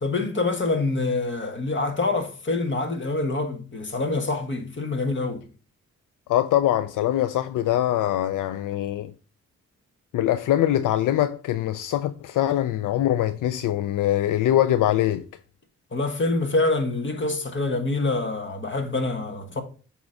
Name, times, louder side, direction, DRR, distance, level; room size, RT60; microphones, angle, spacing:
voice 1, 0.0-5.4 15.9-19.6, left 3 dB, 35° left, 1.4 m, -26 dB
voice 2, 6.3-9.1 10.1-15.2, left 12 dB, 75° left, 0.5 m, -23 dB
8.0 x 3.1 x 5.1 m
cardioid pair, 65°, 31 cm